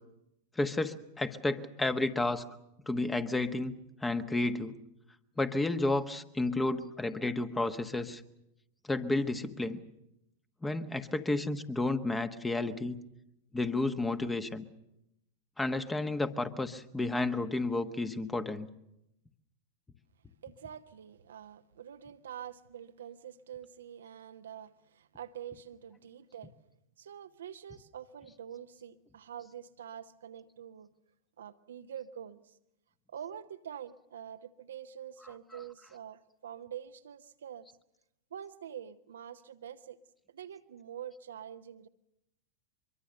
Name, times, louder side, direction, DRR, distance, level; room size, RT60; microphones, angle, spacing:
voice 1, 0.6-2.4 2.9-3.7 4.0-4.7 5.4-8.2 8.8-9.8 10.6-13.0 13.5-14.6 15.6-18.7, left 2 dB, 10° left, 10 dB, 1.4 m, -31 dB
voice 2, 20.4-26.5 27.0-30.9 31.4-32.6 33.1-37.7 38.3-40.0 40.3-41.9, right 9 dB, 65° right, 9 dB, 0.9 m, -46 dB
24.0 x 23.0 x 6.7 m, 0.85 s
figure-of-eight pair, 90°, 0 cm